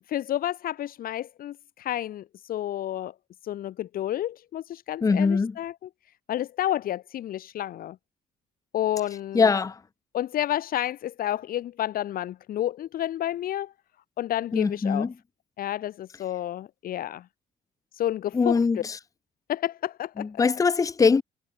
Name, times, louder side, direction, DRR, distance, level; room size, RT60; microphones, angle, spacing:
voice 1, 0.1-3.1 3.4-5.7 6.3-8.0 8.7-9.5 10.1-13.7 14.2-15.1 15.6-17.2 17.9-18.8 19.5-20.3, left 12 dB, 60° left, 1.2 m, -30 dB
voice 2, 5.0-5.6 9.3-9.8 14.5-15.1 18.3-19.0 20.2-21.2, left 5 dB, 20° left, 0.7 m, -22 dB
cardioid pair, 110°, 17 cm